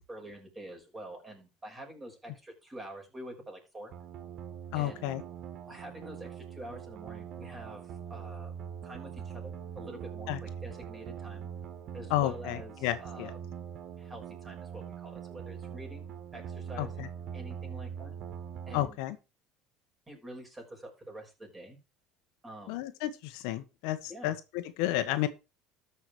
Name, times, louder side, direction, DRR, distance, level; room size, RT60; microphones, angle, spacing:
voice 1, 0.1-3.9 4.7-5.1 5.7-8.5 8.8-11.5 11.9-13.4 14.0-17.1 17.3-18.2 18.7-19.0 20.1-21.8 22.4-22.8 24.1-24.4, right 1 dB, 15° right, 0 dB, 6.4 m, -47 dB
sound 1, 3.9-18.9, right 8 dB, 50° right, 1.5 m, -42 dB
voice 2, 4.7-5.2 10.3-10.4 12.1-13.3 16.8-17.1 18.7-19.2 22.7-25.3, left 14 dB, 80° left, 10 dB, 1.5 m, -32 dB
13.5 x 6.2 x 4.9 m, 0.27 s
supercardioid pair, 115°, 0 cm